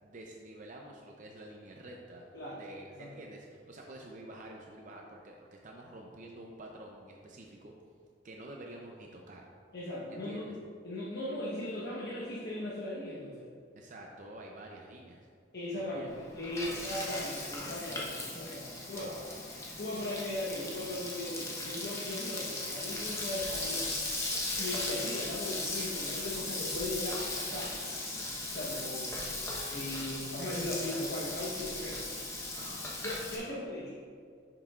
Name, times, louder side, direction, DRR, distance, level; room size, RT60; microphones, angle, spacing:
voice 1, 0.0-7.7 8.2-9.4 10.1-10.5 13.8-15.3 15.8-16.1 16.7-16.8 18.9-19.3 24.6-24.7 32.5-32.8, right 1 dB, 45° right, 0 dB, 0.5 m, -48 dB
voice 2, 9.7-10.5 10.8-13.5 15.5-19.1 19.8-24.0 24.6-27.7 28.5-29.2 29.7-32.2 33.0-34.0, left 1 dB, 60° left, -6 dB, 1.0 m, -38 dB
Frying (food), 16.1-33.4, left 2 dB, 15° left, 0.9 m, -37 dB
10.5 x 5.8 x 2.4 m, 2.2 s
head